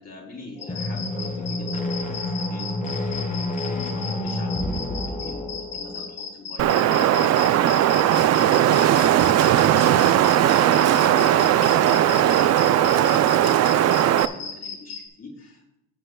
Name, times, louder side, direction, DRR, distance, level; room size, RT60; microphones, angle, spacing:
voice 1, 0.0-2.8 3.2-8.5 8.8-15.8, left 2 dB, 50° left, -2 dB, 3.3 m, -44 dB
sound 1, 0.6-15.0, left 6 dB, 75° left, 3.1 m, -35 dB
sound 2, 0.6-6.2, left 1 dB, 25° left, 1.4 m, -29 dB
Wind, 6.6-14.3, right 11 dB, 55° right, 0.5 m, -18 dB
18.5 x 6.7 x 2.3 m, 0.91 s
cardioid pair, 95°, 33 cm